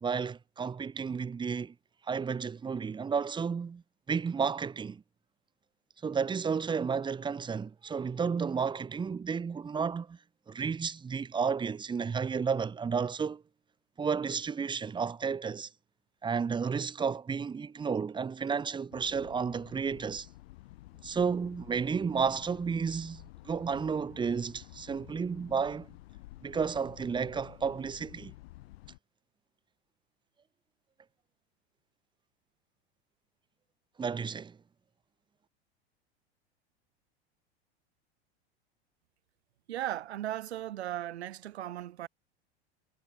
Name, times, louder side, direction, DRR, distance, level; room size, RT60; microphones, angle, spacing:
voice 1, 0.0-1.7 2.1-3.8 4.1-5.0 6.0-10.2 10.5-13.4 14.0-15.7 16.2-20.3 21.0-25.9 26.4-28.3 34.0-34.6, right 6 dB, 15° right, 0.8 m, -32 dB
sound 1, 18.9-29.0, left 18 dB, 70° left, 1.8 m, -52 dB
voice 2, 39.7-42.1, right 12 dB, 80° right, 0.9 m, -37 dB
hypercardioid pair, 95°, 32 cm